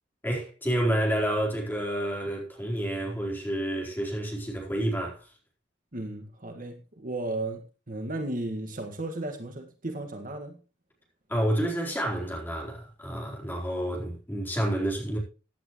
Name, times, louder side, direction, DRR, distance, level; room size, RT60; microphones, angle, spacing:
voice 1, 0.2-5.3 11.3-15.2, right 1 dB, 10° left, 4.2 m, -29 dB
voice 2, 5.9-7.6 7.9-10.6, right 2 dB, 50° right, 1.8 m, -34 dB
15.5 x 10.0 x 3.1 m
head